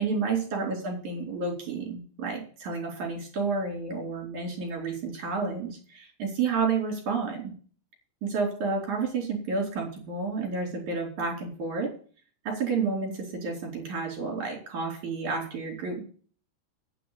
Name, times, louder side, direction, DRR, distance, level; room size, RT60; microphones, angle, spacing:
voice 1, 0.0-7.5 8.2-11.9 12.5-16.0, right 4 dB, 55° right, 0 dB, 5.8 m, -30 dB
9.1 x 8.3 x 8.5 m, 0.42 s
omnidirectional pair, 4.1 m